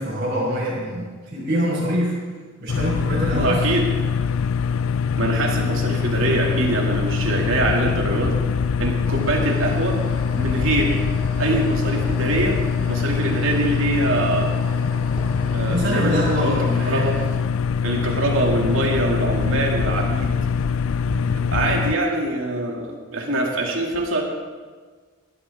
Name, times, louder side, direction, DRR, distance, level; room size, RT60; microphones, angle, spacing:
voice 1, 0.0-2.2 2.6-3.6 15.7-17.1 21.0-21.3, equal, 50° right, -9 dB, 4.4 m, -25 dB
sound 1, 2.7-21.9, left 6 dB, 75° left, 0.5 m, -23 dB
voice 2, 3.3-3.8 5.2-8.4 8.8-10.0 10.4-11.0 11.4-12.6 12.9-14.5 15.5-16.6 16.8-17.2 17.8-20.3 21.3-24.2, right 2 dB, 70° right, -1 dB, 2.5 m, -23 dB
sound 2, 9.0-17.4, left 1 dB, 25° left, 3.1 m, -38 dB
20.5 x 12.5 x 3.7 m, 1.5 s
head